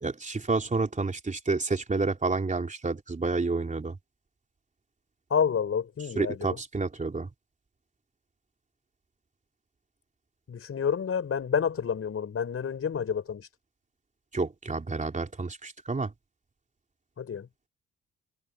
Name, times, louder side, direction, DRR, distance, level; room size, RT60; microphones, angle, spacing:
voice 1, 0.0-4.0 6.2-7.3 14.3-16.1, right 3 dB, 25° right, 3.7 m, -29 dB
voice 2, 5.3-6.6 10.5-13.5 17.2-17.5, left 7 dB, 50° left, 6.2 m, -29 dB
cardioid pair, 90°, 30 cm